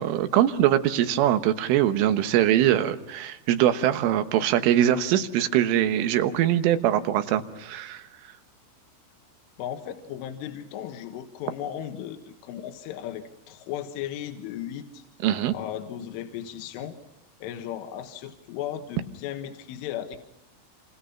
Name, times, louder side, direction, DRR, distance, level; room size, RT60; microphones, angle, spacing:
voice 1, 0.0-8.0 15.2-15.5, right 11 dB, 80° right, 9 dB, 3.7 m, -22 dB
voice 2, 9.6-15.0 15.5-17.0 17.4-20.2, left 10 dB, 80° left, 6 dB, 3.9 m, -36 dB
28.5 x 27.5 x 5.8 m, 0.84 s
omnidirectional pair, 5.8 m